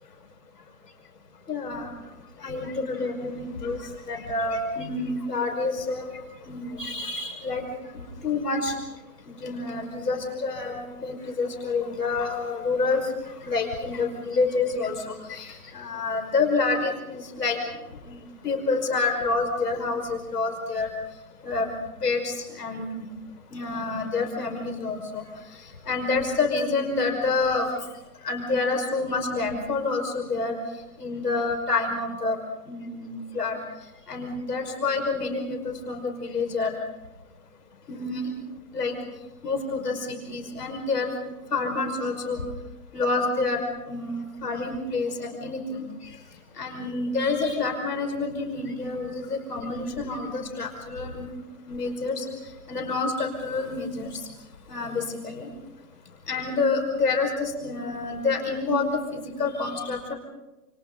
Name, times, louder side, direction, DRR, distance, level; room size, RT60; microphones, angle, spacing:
voice 1, 1.5-1.9 2.4-3.8 4.1-6.0 6.5-7.6 7.9-8.7 9.3-13.0 13.4-17.6 18.0-18.2 18.4-20.9 21.4-21.7 22.0-23.1 23.5-25.2 25.9-27.7 28.2-30.6 31.0-32.4 32.7-33.6 34.1-36.7 37.9-38.3 38.7-38.9 39.4-41.1 41.5-42.4 42.9-45.8 46.6-51.3 51.7-52.2 52.7-54.2 54.7-55.5 56.3-60.1, left 3 dB, 65° left, 4 dB, 5.6 m, -28 dB
29.5 x 29.5 x 4.0 m, 1.0 s
hypercardioid pair, 180°, 49 cm